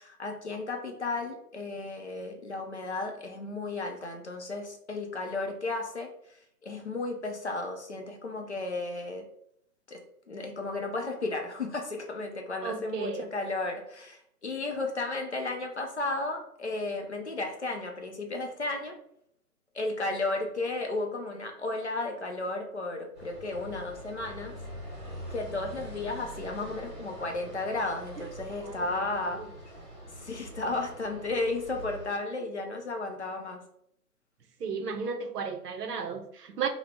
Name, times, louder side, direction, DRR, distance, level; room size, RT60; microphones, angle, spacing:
voice 1, 0.0-6.4 6.6-9.3 9.9-10.0 10.3-19.0 19.7-24.6 25.3-29.4 30.1-33.6, left 2 dB, 50° left, 3 dB, 0.4 m, -34 dB
voice 2, 12.6-13.3 28.6-28.9 29.4-29.5 34.6-36.7, right 5 dB, 75° right, 6 dB, 0.7 m, -34 dB
sound 1, 23.1-32.1, equal, 15° right, 1.4 m, -44 dB
2.9 x 2.0 x 3.2 m, 0.70 s
hypercardioid pair, 170°, 47 cm